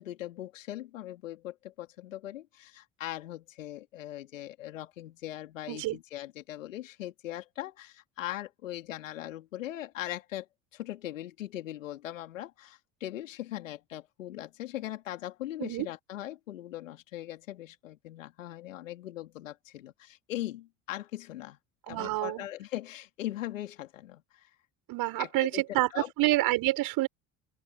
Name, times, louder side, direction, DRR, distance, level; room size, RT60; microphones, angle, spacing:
voice 1, 0.0-21.6 21.9-24.5 25.2-26.1, left 14 dB, 80° left, 3.1 m, -40 dB
voice 2, 5.7-6.0 15.6-15.9 21.9-22.5 24.9-27.1, right 18 dB, 60° right, 5.2 m, -28 dB
hypercardioid pair, 60°, 38 cm